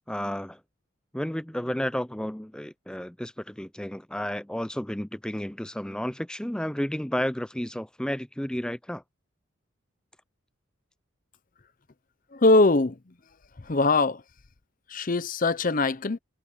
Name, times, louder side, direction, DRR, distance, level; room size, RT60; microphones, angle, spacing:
voice 1, 0.1-0.6 1.1-9.0, equal, 5° left, 0.5 m, -32 dB
voice 2, 12.3-13.0 13.6-14.2 14.9-16.2, left 2 dB, 40° left, 0.7 m, -22 dB
head